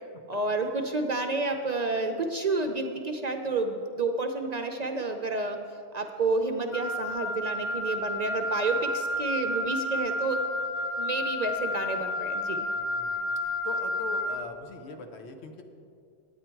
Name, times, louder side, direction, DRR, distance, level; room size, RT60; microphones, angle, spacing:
voice 1, 0.3-5.6 5.9-10.4 11.0-12.7, right 3 dB, 50° right, 5 dB, 0.5 m, -30 dB
Wind instrument woodwind instrument, 6.7-14.5, left 1 dB, 50° left, 0.6 m, -31 dB
voice 2, 12.8-15.6, left 4 dB, 75° left, 5 dB, 1.1 m, -41 dB
9.6 x 9.0 x 4.5 m, 2.4 s
omnidirectional pair, 1.1 m